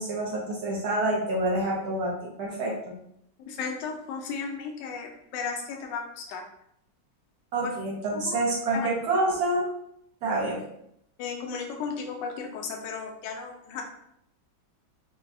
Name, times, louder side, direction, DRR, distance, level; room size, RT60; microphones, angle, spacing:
voice 1, 0.0-2.9 7.5-9.6 10.2-10.6, right 2 dB, 65° right, -3 dB, 1.2 m, -27 dB
voice 2, 3.5-6.4 7.6-7.7 8.1-8.4 8.7-8.9 11.2-13.8, left 5 dB, 80° left, 1 dB, 1.2 m, -35 dB
5.4 x 2.2 x 2.6 m, 0.75 s
omnidirectional pair, 1.9 m